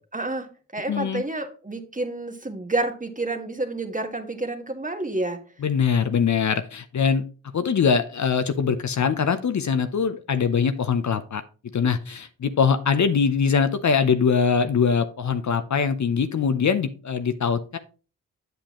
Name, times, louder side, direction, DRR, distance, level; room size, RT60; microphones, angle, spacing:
voice 1, 0.1-5.4, right 2 dB, 20° right, 6 dB, 1.5 m, -29 dB
voice 2, 0.9-1.2 5.6-7.2 7.5-11.4 11.7-17.8, left 6 dB, 50° left, 10 dB, 0.7 m, -22 dB
7.8 x 6.8 x 3.0 m, 0.36 s
supercardioid pair, 45°, 36 cm